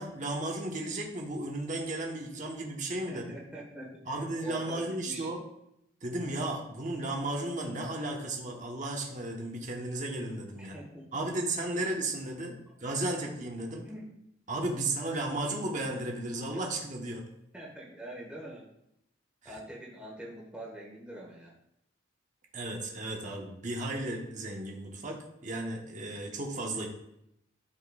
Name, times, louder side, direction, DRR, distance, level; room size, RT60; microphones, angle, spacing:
voice 1, 0.0-3.2 4.1-5.4 6.0-10.8 11.1-13.8 14.5-17.2 19.4-19.5 22.5-26.9, right 2 dB, 40° right, 0 dB, 1.1 m, -34 dB
voice 2, 3.1-5.3 10.6-11.1 13.8-14.1 17.5-18.7 19.4-21.6, right 1 dB, 5° right, -4 dB, 1.5 m, -44 dB
11.5 x 4.5 x 2.4 m, 0.78 s
head